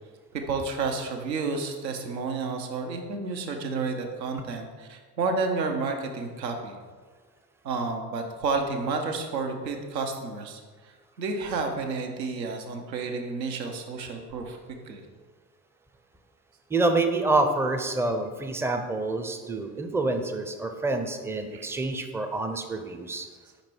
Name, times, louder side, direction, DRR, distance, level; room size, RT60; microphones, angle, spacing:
voice 1, 0.3-6.8 7.6-10.6 11.2-14.6 14.9-15.0 21.5-21.7, right 4 dB, 80° right, 4 dB, 0.8 m, -30 dB
voice 2, 16.7-23.3, right 2 dB, 5° right, 6 dB, 0.5 m, -27 dB
5.2 x 5.2 x 4.5 m, 1.5 s
figure-of-eight pair, 55°, 49 cm